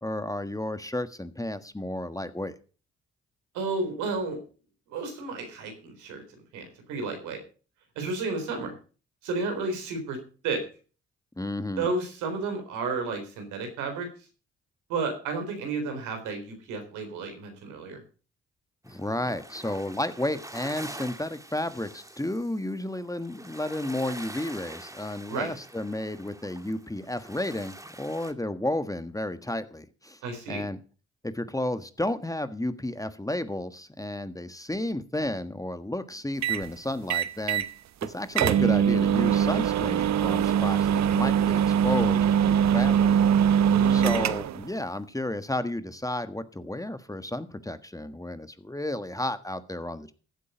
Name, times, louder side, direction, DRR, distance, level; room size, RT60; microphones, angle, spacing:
voice 1, 0.0-2.6 11.4-11.9 18.9-30.2 30.5-30.8 31.2-37.6 38.0-43.1 43.9-50.1, left 1 dB, 10° left, 11 dB, 1.5 m, -32 dB
voice 2, 3.5-4.4 4.9-6.2 6.5-7.4 8.0-8.8 9.2-10.2 10.4-10.6 11.8-14.1 14.9-18.0 25.3-25.5 30.2-30.6 43.6-44.3, right 3 dB, 80° right, 5 dB, 3.9 m, -32 dB
sound 1, 18.9-28.3, right 1 dB, 10° right, 2.1 m, -45 dB
sound 2, 36.4-36.7 37.1-37.7 38.0-38.1 38.4-44.6, right 9 dB, 65° right, 0.9 m, -22 dB
15.0 x 8.4 x 5.2 m, 0.38 s
hypercardioid pair, 40°, 30 cm